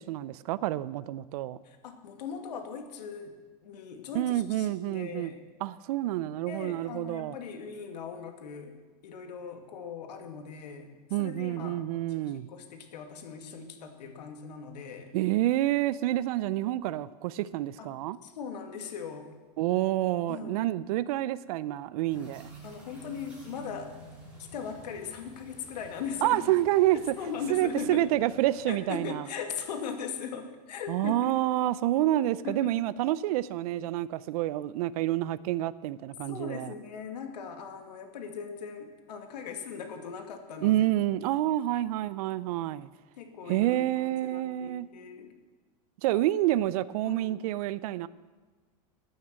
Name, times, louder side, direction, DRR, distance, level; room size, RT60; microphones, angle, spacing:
voice 1, 0.0-1.6 4.1-5.3 5.6-7.4 11.1-12.5 15.1-18.2 19.6-22.5 26.2-27.1 27.5-29.2 30.9-36.7 40.6-42.9 43.5-44.9 46.0-48.1, right 14 dB, 65° right, 0.6 m, -28 dB
voice 2, 1.6-3.3 3.6-5.4 6.5-8.7 9.0-10.9 11.2-11.8 12.1-15.1 17.8-17.9 18.2-19.3 20.3-20.7 22.6-23.9 24.4-26.4 27.2-28.0 28.7-31.3 32.1-32.7 36.3-40.8 43.2-45.3 47.0-47.4, left 6 dB, 85° left, 2.4 m, -39 dB
sound 1, 22.1-28.8, right 2 dB, 5° right, 4.9 m, -50 dB
15.0 x 9.5 x 7.6 m
supercardioid pair, 140°, 21 cm